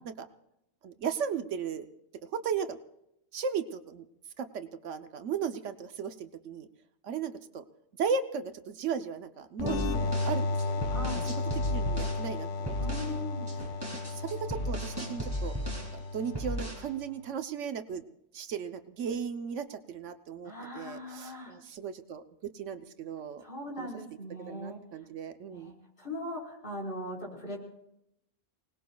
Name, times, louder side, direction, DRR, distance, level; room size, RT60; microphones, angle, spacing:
voice 1, 0.8-1.8 2.2-2.8 3.3-4.0 4.4-6.7 7.0-7.6 8.0-11.3 11.7-12.8 13.0-13.2 14.1-15.5 15.9-18.0 18.3-23.4 23.8-24.0 24.5-25.7, right 6 dB, 80° right, 8 dB, 1.1 m, -36 dB
sound 1, 9.6-17.0, left 3 dB, 85° left, 1.2 m, -34 dB
voice 2, 9.6-10.1 10.9-11.2 12.8-13.5 20.4-21.5 23.4-24.8 25.5-25.7 26.0-27.6, left 1 dB, 45° left, -3 dB, 4.7 m, -39 dB
sound 2, 9.7-12.2 12.7-13.2 13.5-16.0 16.3-16.9, equal, 20° right, 3.0 m, -35 dB
29.5 x 19.5 x 2.3 m, 0.82 s
omnidirectional pair, 1.3 m